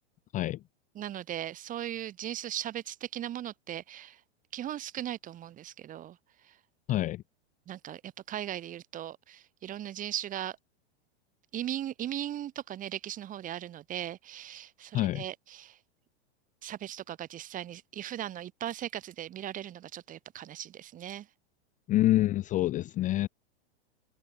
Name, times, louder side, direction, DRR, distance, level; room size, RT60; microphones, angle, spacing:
voice 1, 0.9-4.2 4.5-6.2 7.7-10.6 11.5-15.8 16.6-21.3, right 12 dB, 25° right, 1.4 m, -38 dB
voice 2, 6.9-7.2 14.9-15.2 21.9-23.3, left 15 dB, 25° left, 0.6 m, -26 dB
supercardioid pair, 135°, 32 cm